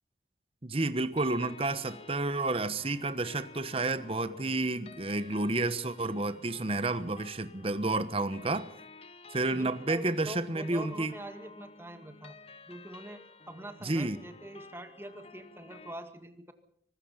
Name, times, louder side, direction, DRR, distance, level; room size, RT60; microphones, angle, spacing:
voice 1, 0.6-8.7 9.3-11.1 13.8-14.2, right 2 dB, 30° right, 12 dB, 1.1 m, -30 dB
sound 1, 1.2-15.9, left 3 dB, 35° left, 1.1 m, -52 dB
voice 2, 9.5-12.4 12.7-16.5, right 1 dB, 15° right, 8 dB, 2.0 m, -44 dB
24.0 x 20.0 x 5.7 m, 0.69 s
head